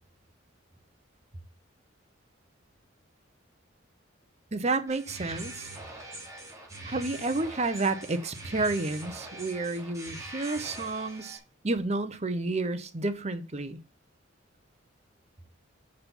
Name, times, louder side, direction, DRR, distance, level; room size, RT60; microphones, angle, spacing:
voice 1, 4.5-5.7 6.8-11.4 11.6-13.8, right 3 dB, 35° right, 0.9 m, -30 dB
sound 1, 4.9-11.4, right 2 dB, 15° right, 3.0 m, -42 dB
6.5 x 5.6 x 7.2 m
head